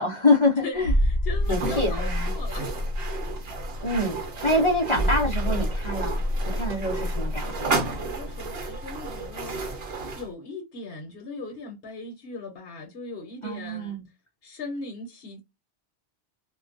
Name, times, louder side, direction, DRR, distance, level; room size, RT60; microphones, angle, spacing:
voice 1, 0.0-0.9 1.5-2.3 3.8-4.2 4.4-6.2 6.5-7.8 13.4-14.0, left 2 dB, 35° left, 0.6 m, -25 dB
voice 2, 0.6-2.9 7.8-14.0 14.4-15.4, left 3 dB, 60° left, 1.0 m, -39 dB
sound 1, 0.8-9.2 9.5-9.7, left 1 dB, 90° right, 0.9 m, -28 dB
sound 2, 1.4-10.3, right 3 dB, 65° right, 0.9 m, -33 dB
2.2 x 2.2 x 2.5 m
omnidirectional pair, 1.2 m